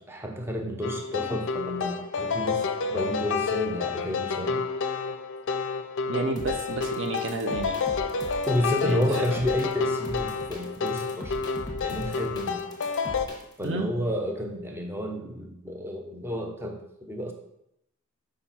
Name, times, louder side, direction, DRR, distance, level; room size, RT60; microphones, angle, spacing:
voice 1, 0.1-2.6 2.9-4.6 8.5-11.4 11.8-12.6 13.6-17.3, equal, 10° right, 2 dB, 0.7 m, -30 dB
sound 1, 0.8-13.3, left 5 dB, 55° left, 0.5 m, -30 dB
voice 2, 6.1-7.8 8.8-9.2 13.6-14.0, right 3 dB, 55° right, 6 dB, 0.6 m, -31 dB
sound 2, 6.4-13.7, left 1 dB, 20° left, 1.2 m, -40 dB
5.0 x 4.4 x 5.6 m, 0.79 s
head